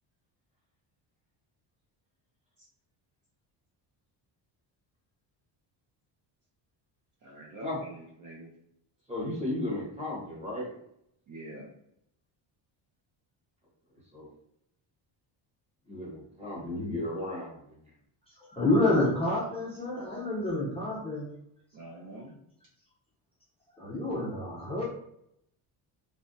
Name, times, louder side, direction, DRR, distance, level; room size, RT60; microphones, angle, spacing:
voice 1, 7.2-8.5 11.3-11.7 21.7-22.4, right 1 dB, 40° right, -2 dB, 0.6 m, -45 dB
voice 2, 9.1-10.8 14.1-14.3 15.9-17.8, left 1 dB, 15° right, -5 dB, 1.0 m, -35 dB
voice 3, 18.5-21.2 23.8-24.8, left 2 dB, 10° left, -8 dB, 0.5 m, -28 dB
3.3 x 2.2 x 2.6 m, 0.75 s
cardioid pair, 155°, 48 cm